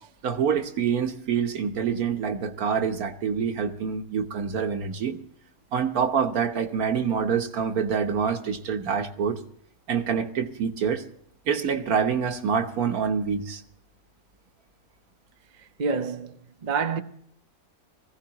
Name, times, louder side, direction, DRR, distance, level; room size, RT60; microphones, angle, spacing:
voice 1, 0.2-5.2 5.7-9.4 9.9-11.0 11.5-13.6, right 6 dB, 70° right, 1.5 m, -26 dB
voice 2, 15.8-16.3 16.6-17.0, right 5 dB, 40° right, 0.7 m, -27 dB
19.5 x 15.5 x 2.9 m
omnidirectional pair, 1.6 m